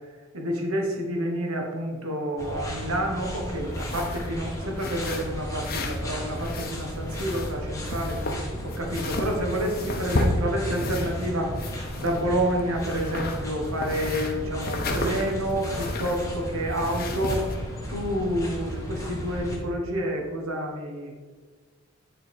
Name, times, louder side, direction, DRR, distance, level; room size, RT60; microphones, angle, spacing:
voice 1, 0.3-8.2 8.6-17.4 17.9-21.1, equal, 70° right, 2 dB, 1.4 m, -29 dB
sound 1, 2.4-19.6, equal, 15° left, 1.3 m, -34 dB
sound 2, 3.7-4.3 4.8-6.0 6.3-7.6 7.9-11.3 11.6-12.5 12.8-16.3 16.7-17.5, left 2 dB, 40° left, 0.8 m, -32 dB
9.6 x 4.0 x 4.9 m, 1.4 s
head